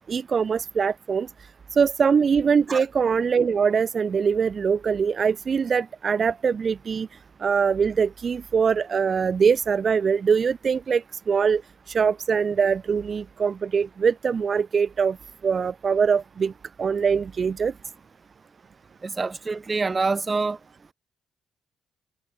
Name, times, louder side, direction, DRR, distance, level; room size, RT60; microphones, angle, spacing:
voice 1, 0.1-1.3 1.7-7.1 7.4-11.6 11.9-15.2 15.4-16.5 16.8-17.7, right 6 dB, 45° right, 1.1 m, -22 dB
voice 2, 19.0-20.6, right 4 dB, 30° right, 1.4 m, -26 dB
cardioid pair, 90°, 0 cm